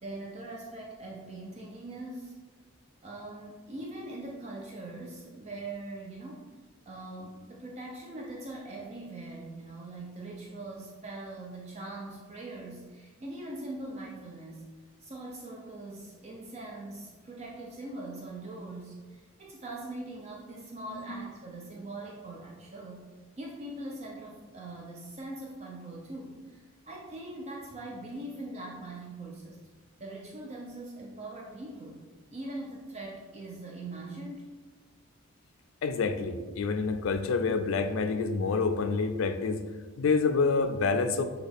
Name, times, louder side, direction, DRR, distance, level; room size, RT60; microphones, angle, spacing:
voice 1, 0.0-2.4 3.0-6.5 6.9-14.6 15.0-23.1 23.4-29.6 30.0-32.0 32.3-34.5, right 2 dB, 30° right, -2 dB, 0.4 m, -42 dB
voice 2, 20.9-21.2 35.8-39.6 40.0-41.2, left 4 dB, 70° left, 8 dB, 0.3 m, -27 dB
6.1 x 2.3 x 3.4 m, 1.3 s
head